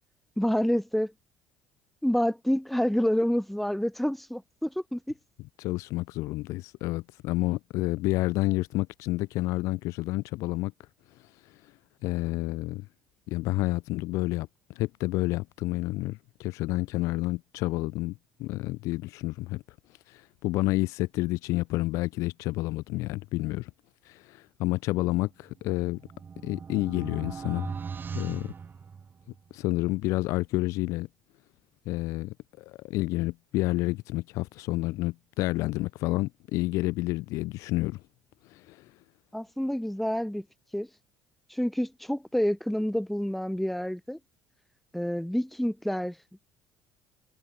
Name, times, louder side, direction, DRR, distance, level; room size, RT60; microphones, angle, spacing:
voice 1, 0.4-1.1 2.0-5.1 39.3-40.4 40.7-40.9 41.5-44.2 44.9-46.2, equal, ahead, 2.9 m, -28 dB
voice 2, 5.6-10.7 12.0-12.9 13.3-14.5 14.8-19.6 20.1-23.7 24.1-26.0 26.4-27.7 28.1-28.5 29.5-31.1 31.9-38.0 38.5-38.9, left 20 dB, 70° left, 0.7 m, -29 dB
sound 1, 25.5-29.5, right 6 dB, 35° right, 2.4 m, -39 dB
hypercardioid pair, 65°, 5 cm